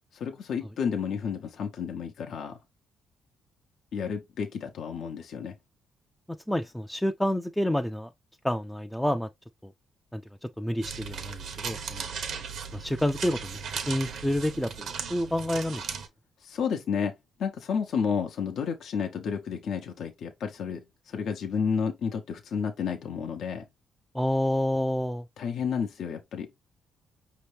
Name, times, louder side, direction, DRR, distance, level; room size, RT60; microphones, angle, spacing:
voice 1, 0.1-2.6 3.9-5.5 16.4-17.1 17.4-23.6 25.4-26.7, left 6 dB, 65° left, 0.7 m, -31 dB
voice 2, 6.5-8.1 8.4-9.3 9.6-9.7 10.1-12.1 12.7-13.6 13.9-15.9 24.1-25.2, left 1 dB, 5° left, 0.4 m, -29 dB
sound 1, 10.8-16.1, right 6 dB, 70° right, 0.8 m, -37 dB
5.3 x 2.8 x 3.2 m
cardioid pair, 90°, 0 cm